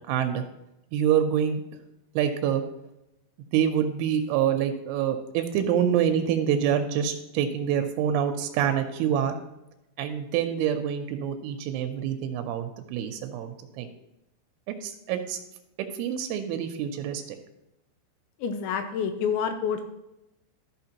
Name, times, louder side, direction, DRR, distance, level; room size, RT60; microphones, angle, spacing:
voice 1, 0.1-0.4 0.9-1.6 2.2-2.6 3.5-9.4 10.0-13.9 14.7-15.4 16.0-17.2, right 9 dB, 85° right, 7 dB, 3.1 m, -26 dB
voice 2, 18.4-19.8, left 7 dB, 85° left, 8 dB, 2.8 m, -28 dB
13.5 x 6.2 x 2.9 m, 0.90 s
omnidirectional pair, 5.5 m